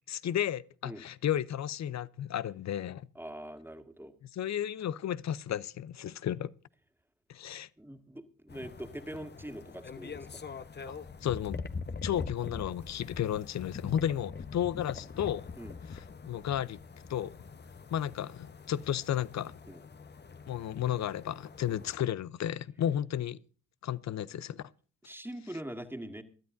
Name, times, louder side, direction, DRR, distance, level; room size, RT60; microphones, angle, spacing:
voice 1, 0.1-3.1 4.3-6.5 7.3-7.7 10.9-11.0 11.2-11.6 12.0-15.5 16.3-16.8 17.1-17.3 17.9-19.6 20.5-23.4 23.8-24.6, left 10 dB, 45° left, 0.7 m, -33 dB
voice 2, 3.2-4.1 7.8-10.4 15.6-15.8 19.7-19.8 21.6-21.8 25.0-26.2, right 1 dB, 5° right, 2.1 m, -43 dB
sound 1, 8.5-22.0, left 5 dB, 30° left, 1.0 m, -43 dB
22.0 x 12.5 x 2.6 m
hypercardioid pair, 45°, 37 cm